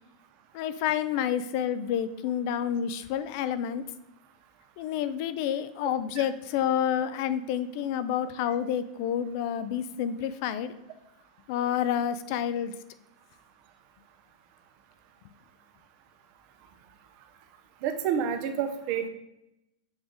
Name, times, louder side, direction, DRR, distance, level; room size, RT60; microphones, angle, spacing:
voice 1, 0.5-3.8 4.8-10.7 11.5-12.7, left 9 dB, 50° left, 13 dB, 0.5 m, -29 dB
voice 2, 17.8-19.1, right 8 dB, 45° right, 7 dB, 0.7 m, -29 dB
7.1 x 3.5 x 3.8 m, 0.87 s
supercardioid pair, 150°, 3 cm